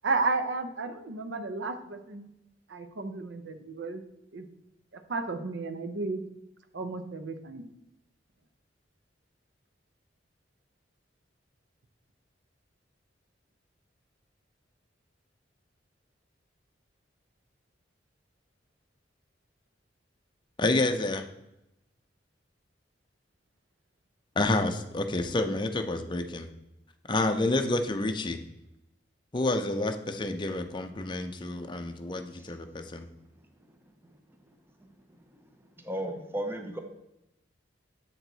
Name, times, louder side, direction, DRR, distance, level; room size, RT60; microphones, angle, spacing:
voice 1, 0.0-2.3 2.7-4.0 4.3-4.5 4.9-6.2 6.7-7.7, right 3 dB, 80° right, 9 dB, 0.6 m, -33 dB
voice 2, 20.6-21.2 24.4-26.5 27.1-28.4 29.3-33.1, left 2 dB, 25° left, 6 dB, 0.5 m, -29 dB
voice 3, 35.8-36.8, right 1 dB, 15° right, 5 dB, 0.7 m, -33 dB
7.6 x 4.5 x 3.9 m, 0.88 s
head